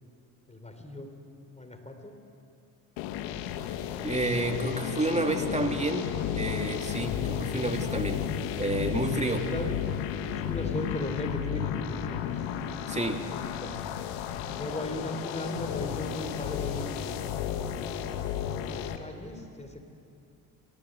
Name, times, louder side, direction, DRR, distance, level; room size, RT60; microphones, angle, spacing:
voice 1, 0.5-1.1 1.4-2.2 9.3-9.8 10.2-12.3 13.3-13.8 14.5-17.8 18.6-19.8, left 1 dB, 15° left, 6 dB, 4.0 m, -37 dB
sound 1, 3.0-19.0, left 9 dB, 75° left, 1.4 m, -33 dB
voice 2, 4.0-6.1 6.4-8.2 8.6-9.5 12.9-13.2, right 2 dB, 15° right, 4 dB, 2.7 m, -29 dB
25.5 x 17.5 x 7.9 m, 2.5 s
hypercardioid pair, 50°, 45 cm